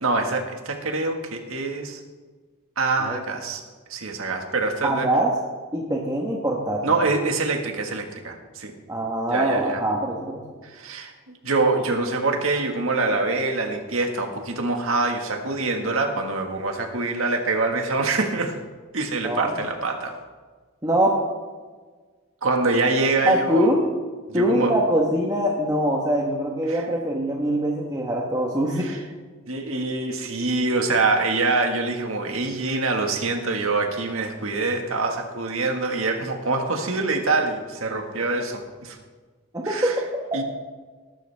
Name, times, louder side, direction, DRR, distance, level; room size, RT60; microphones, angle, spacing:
voice 1, 0.0-2.0 2.8-3.6 3.9-5.1 6.8-8.7 9.3-9.8 10.6-11.1 11.4-18.6 18.9-20.2 22.4-23.8 24.3-24.8 26.7-26.8 28.7-29.0 29.5-39.0 39.6-39.9 40.3-40.4, right 3 dB, 65° right, 3 dB, 1.8 m, -25 dB
voice 2, 4.8-5.3 5.7-6.9 8.9-10.6 19.2-19.5 20.8-21.2 23.2-23.8 24.3-28.9 39.5-40.2, right 1 dB, 15° right, -1 dB, 1.3 m, -23 dB
19.0 x 12.0 x 3.5 m, 1.4 s
head